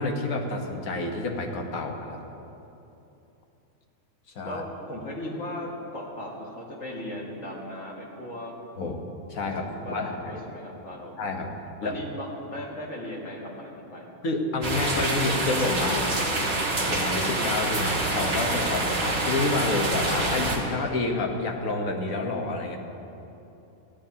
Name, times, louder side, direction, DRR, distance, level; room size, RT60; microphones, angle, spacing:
voice 1, 0.0-2.2 4.3-4.6 8.8-9.0 9.3-10.4 11.2-11.5 11.8-11.9 14.2-16.1 16.8-22.8, left 3 dB, 70° left, 3 dB, 1.6 m, -29 dB
voice 2, 4.4-8.5 9.6-11.2 11.8-14.1, left 1 dB, 55° left, -2 dB, 2.2 m, -37 dB
sound 1, 14.6-20.6, right 2 dB, 45° right, 1.7 m, -26 dB
18.5 x 14.0 x 2.8 m, 2.9 s
omnidirectional pair, 1.5 m